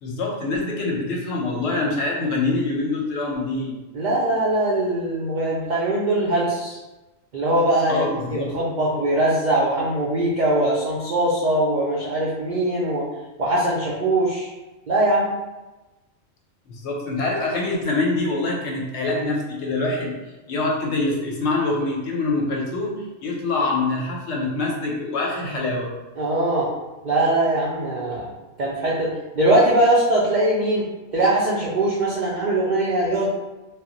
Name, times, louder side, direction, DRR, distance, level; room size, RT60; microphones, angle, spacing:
voice 1, 0.0-3.7 7.9-8.5 16.7-20.2 20.5-25.9, left 2 dB, 65° left, -1 dB, 0.8 m, -25 dB
voice 2, 3.9-6.8 7.3-13.1 13.4-14.5 14.9-15.3 26.2-26.7 27.0-28.3 28.6-33.3, right 1 dB, 80° right, -5 dB, 0.4 m, -21 dB
2.1 x 2.0 x 3.7 m, 1.1 s
omnidirectional pair, 1.3 m